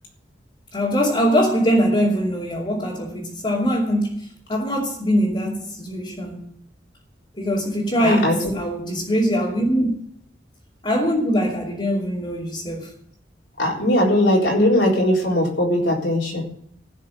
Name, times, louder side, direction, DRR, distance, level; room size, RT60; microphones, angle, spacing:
voice 1, 0.7-6.5 7.4-9.9 10.8-12.9, equal, 30° left, 2.7 m, -22 dB
voice 2, 8.0-8.4 13.6-16.4, left 1 dB, 70° left, 4.1 m, -19 dB
15.5 x 6.6 x 7.7 m
head